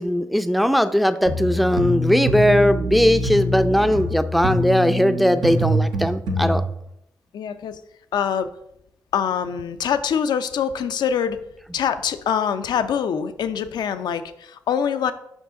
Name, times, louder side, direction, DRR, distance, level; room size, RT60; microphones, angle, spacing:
voice 1, 0.0-6.6, equal, ahead, 10 dB, 0.5 m, -19 dB
sound 1, 1.3-6.6, left 1 dB, 75° right, 1.1 m, -24 dB
voice 2, 7.3-7.8 8.1-8.5 9.1-11.4 11.7-15.1, left 8 dB, 75° left, 10 dB, 0.5 m, -24 dB
6.3 x 5.4 x 3.7 m, 0.79 s
supercardioid pair, 50°, 7 cm